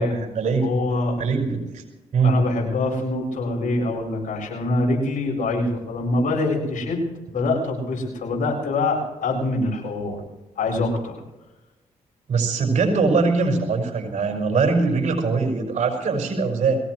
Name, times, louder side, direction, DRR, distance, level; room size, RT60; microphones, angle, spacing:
voice 1, 0.0-0.7 1.2-1.8 2.1-2.4 12.3-16.8, right 4 dB, 55° right, 3 dB, 5.8 m, -22 dB
voice 2, 0.6-1.2 2.2-7.0 7.3-10.2 10.6-11.2, left 2 dB, 65° left, -1 dB, 7.4 m, -24 dB
22.5 x 18.0 x 3.3 m, 1.1 s
supercardioid pair, 55°, 14 cm